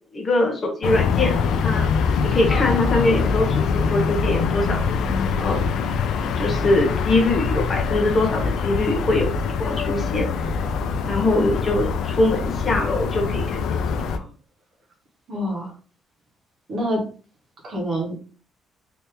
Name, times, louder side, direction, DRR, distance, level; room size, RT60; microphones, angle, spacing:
voice 1, 0.1-1.9 2.2-4.8 5.4-5.7 6.4-9.3 9.6-10.6 11.1-13.8 14.1-14.2, left 2 dB, 25° left, 2 dB, 0.7 m, -23 dB
sound 1, 0.8-14.2, left 5 dB, 70° left, 0.4 m, -23 dB
voice 2, 15.3-15.7 16.7-17.0 17.6-18.2, equal, 40° right, 0 dB, 1.1 m, -26 dB
3.5 x 2.7 x 2.9 m, 0.37 s
cardioid pair, 180°, 0 cm